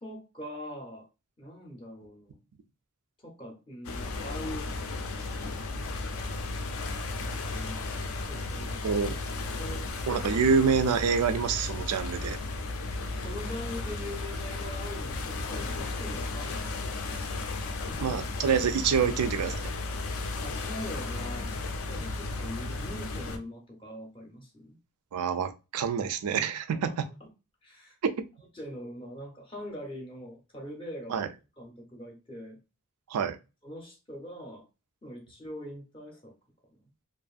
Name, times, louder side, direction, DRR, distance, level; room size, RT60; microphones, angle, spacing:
voice 1, 0.0-1.1 1.4-2.4 3.2-5.2 5.7-6.6 7.5-8.8 9.6-9.9 13.2-18.4 20.4-24.8 26.7-26.9 27.2-27.3 27.6-28.0 28.5-31.2 31.6-32.6 33.6-34.7 35.0-36.3, left 1 dB, 25° left, 0.6 m, -43 dB
sound 1, 3.8-23.4, left 3 dB, 65° left, 0.4 m, -34 dB
voice 2, 8.8-9.2 10.1-12.4 18.0-19.7 25.1-27.1 28.0-28.1 31.1-31.3 33.1-33.4, right 6 dB, 85° right, 0.4 m, -27 dB
2.6 x 2.5 x 2.3 m
head